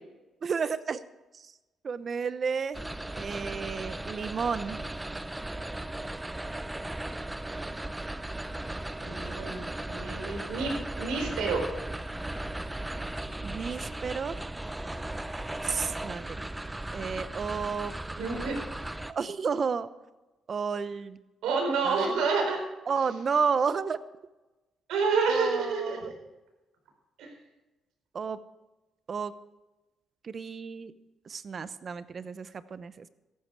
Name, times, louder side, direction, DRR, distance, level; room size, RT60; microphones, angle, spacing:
voice 1, 0.4-1.0 1.3-1.5 1.8-2.8 3.1-4.8 13.4-14.5 15.6-16.4 16.9-17.9 19.1-19.9 20.5-21.2 21.8-22.1 22.9-24.0 25.3-26.1 28.1-28.4 29.1-29.3 30.2-30.9 31.3-33.1, right 5 dB, 45° right, 14 dB, 0.8 m, -31 dB
sound 1, 2.7-19.1, right 1 dB, 10° right, 0.6 m, -37 dB
voice 2, 9.0-11.7 18.2-18.6 21.4-22.6 24.9-26.1 27.2-27.3, right 4 dB, 85° right, 2 dB, 4.4 m, -29 dB
14.5 x 11.0 x 4.7 m, 1.1 s
cardioid pair, 90°, 0 cm